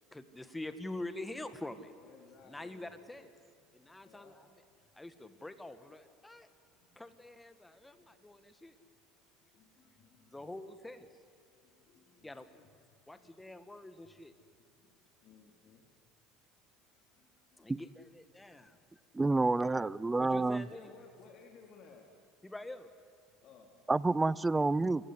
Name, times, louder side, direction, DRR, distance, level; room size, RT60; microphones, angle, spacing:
voice 1, 0.1-1.9 2.4-3.3 3.7-4.5 4.9-6.5 7.0-8.8 10.3-11.2 12.2-12.5 13.1-14.3 17.6-18.8 20.2-20.9 22.4-22.9, left 2 dB, 10° left, 11 dB, 1.6 m, -45 dB
voice 2, 2.0-2.9 3.7-4.3 4.8-4.9 6.9-7.0 8.0-8.1 9.5-10.5 11.6-12.7 13.1-13.3 14.8-14.9 15.2-15.8 16.9-17.7 20.7-22.2 23.4-23.8, left 5 dB, 50° left, 3 dB, 3.0 m, -60 dB
voice 3, 19.1-20.6 23.9-25.0, right 3 dB, 15° right, 21 dB, 0.5 m, -29 dB
28.5 x 15.5 x 9.9 m, 2.2 s
supercardioid pair, 115°, 0 cm